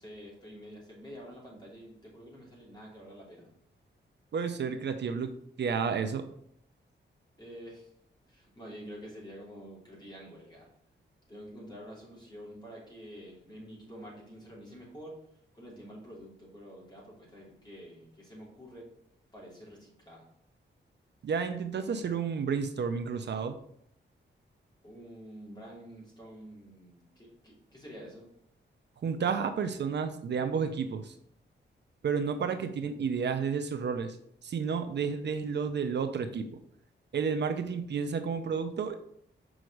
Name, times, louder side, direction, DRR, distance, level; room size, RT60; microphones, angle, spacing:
voice 1, 0.0-3.5 7.4-7.9 8.3-10.7 11.3-15.2 15.5-18.9 19.3-20.3 24.8-28.3, equal, 20° left, -4 dB, 3.0 m, -48 dB
voice 2, 4.3-6.2 21.2-23.6 29.0-31.1 32.0-34.2 34.4-36.5 37.1-39.0, right 6 dB, 60° right, 8 dB, 0.6 m, -31 dB
6.3 x 5.2 x 4.8 m, 0.69 s
wide cardioid pair, 155°, 20 cm